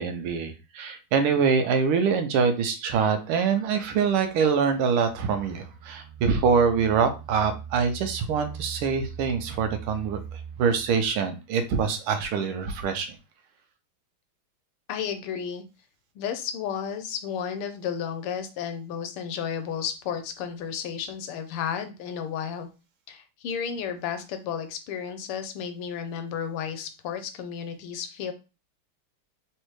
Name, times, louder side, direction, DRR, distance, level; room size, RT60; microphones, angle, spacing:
voice 1, 0.0-13.1, right 6 dB, 85° right, 7 dB, 1.6 m, -24 dB
sound 1, 3.5-11.1, right 7 dB, 65° right, 1.7 m, -42 dB
voice 2, 14.9-15.6 16.1-22.7 23.1-28.3, left 7 dB, 90° left, 9 dB, 1.6 m, -32 dB
3.9 x 3.3 x 3.1 m, 0.29 s
omnidirectional pair, 2.4 m